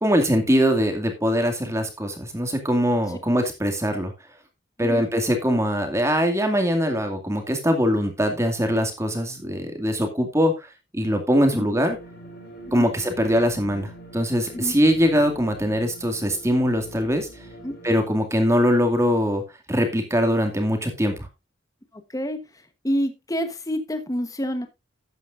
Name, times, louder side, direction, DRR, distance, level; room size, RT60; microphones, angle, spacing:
voice 1, 0.0-4.1 4.8-12.0 12.7-17.3 17.8-19.4 19.7-21.3, equal, 15° right, 5 dB, 2.2 m, -22 dB
sound 1, 11.9-18.0, right 2 dB, 55° left, 5.2 m, -43 dB
voice 2, 21.9-22.4 22.8-24.7, equal, 20° left, 8 dB, 1.1 m, -27 dB
12.5 x 9.1 x 2.6 m, 0.24 s
head